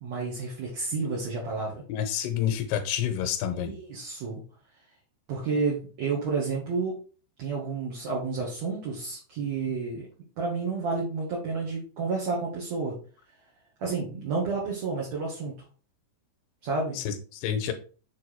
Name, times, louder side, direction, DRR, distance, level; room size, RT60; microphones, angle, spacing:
voice 1, 0.0-1.8 3.5-4.4 5.3-7.0 7.4-10.1 10.4-13.0 13.8-15.5 16.6-17.0, right 4 dB, 60° right, -4 dB, 2.0 m, -30 dB
voice 2, 1.9-3.7 17.0-17.7, left 9 dB, 80° left, 8 dB, 2.7 m, -28 dB
6.9 x 3.5 x 4.6 m, 0.38 s
omnidirectional pair, 4.9 m